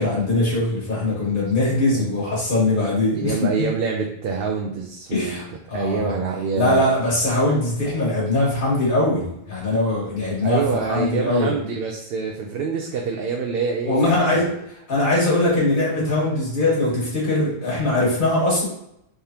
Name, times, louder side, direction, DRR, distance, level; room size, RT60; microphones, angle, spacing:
voice 1, 0.0-3.5 5.1-6.1 6.5-11.5 13.8-14.5 14.9-18.6, left 2 dB, 55° left, -7 dB, 1.7 m, -21 dB
voice 2, 3.2-5.4 5.7-6.8 10.4-14.5, right 5 dB, 70° right, 2 dB, 0.7 m, -26 dB
3.5 x 3.3 x 2.8 m, 0.78 s
omnidirectional pair, 1.1 m